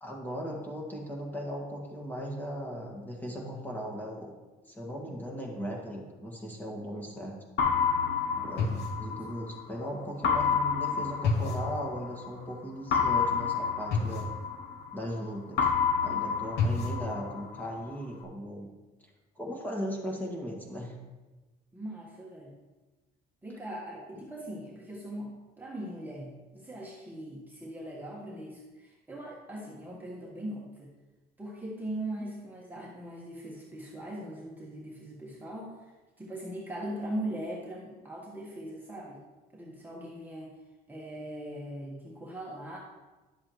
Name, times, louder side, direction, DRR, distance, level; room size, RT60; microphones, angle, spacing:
voice 1, 0.0-4.3 4.7-7.3 8.4-14.4 14.9-15.7 16.0-18.7 19.4-21.0, equal, 10° left, -2 dB, 1.8 m, -38 dB
sound 1, 7.6-9.6 10.2-12.3 12.9-15.2 15.6-17.6, left 5 dB, 75° left, 1.0 m, -28 dB
voice 2, 8.3-8.8 9.1-9.3 21.7-22.5 23.4-30.9 31.4-39.2 39.5-40.6 40.9-42.8, right 1 dB, 10° right, -4 dB, 1.3 m, -40 dB
10.5 x 7.5 x 3.1 m, 1.2 s
cardioid pair, 110°, 17 cm